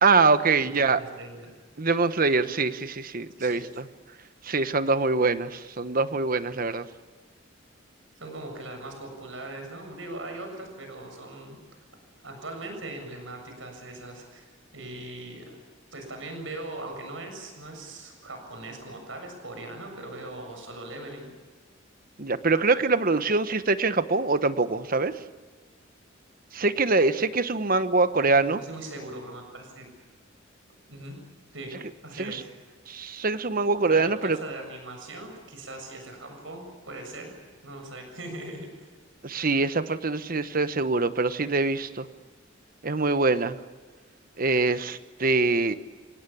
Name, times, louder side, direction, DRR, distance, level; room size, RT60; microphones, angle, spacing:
voice 1, 0.0-1.0 1.8-3.9 4.4-6.9 22.2-25.2 26.5-28.6 32.2-32.4 32.9-34.4 39.2-42.1 42.8-43.6 44.4-45.7, right 3 dB, 45° right, 12 dB, 1.1 m, -24 dB
voice 2, 0.6-1.5 3.4-3.7 8.2-11.6 12.2-15.6 15.9-21.3 28.3-29.9 30.9-31.2 31.5-31.8 32.0-32.5 33.9-37.3 37.6-38.9, right 2 dB, 75° right, 4 dB, 7.0 m, -40 dB
29.0 x 18.0 x 8.6 m, 1.4 s
head